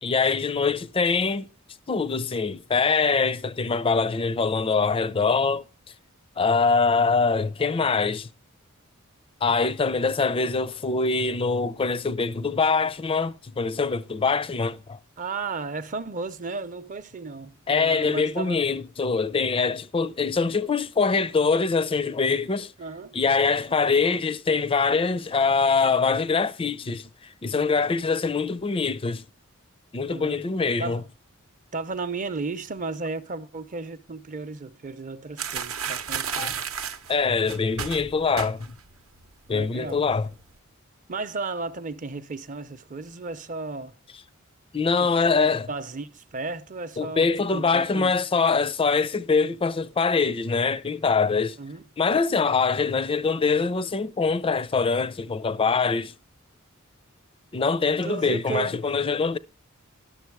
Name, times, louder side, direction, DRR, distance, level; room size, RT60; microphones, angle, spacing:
voice 1, 0.0-1.5 1.9-5.6 6.4-8.3 9.4-15.0 17.7-22.7 23.1-29.2 29.9-31.0 36.4-36.6 37.1-38.8 39.5-40.3 44.7-45.7 47.0-51.6 52.0-56.1 57.5-59.4, left 4 dB, 25° left, 0.4 m, -24 dB
voice 2, 15.2-18.6 22.8-23.1 30.1-30.4 30.8-31.0 31.7-36.5 39.5-40.0 41.1-44.0 45.0-45.1 45.4-48.1 51.6-51.8 58.0-58.7, right 3 dB, 40° right, 0.6 m, -34 dB
sound 1, 35.4-38.9 39.2-39.5 39.8-40.4, right 7 dB, 70° right, 0.7 m, -33 dB
12.0 x 7.0 x 4.6 m
head